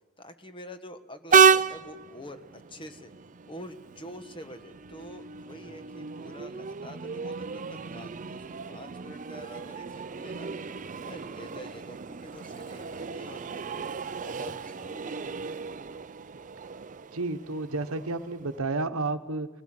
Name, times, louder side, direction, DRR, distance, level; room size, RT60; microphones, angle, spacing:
voice 1, 0.2-2.4 2.7-3.1 3.4-8.4 8.7-9.9 10.2-10.5 11.0-13.9 14.2-15.3, equal, 25° left, 9 dB, 1.3 m, -46 dB
Train, 1.3-18.6, right 6 dB, 35° right, 0.5 m, -31 dB
voice 2, 17.1-19.5, right 3 dB, 70° right, 10 dB, 1.1 m, -31 dB
20.5 x 17.0 x 7.6 m, 1.2 s
head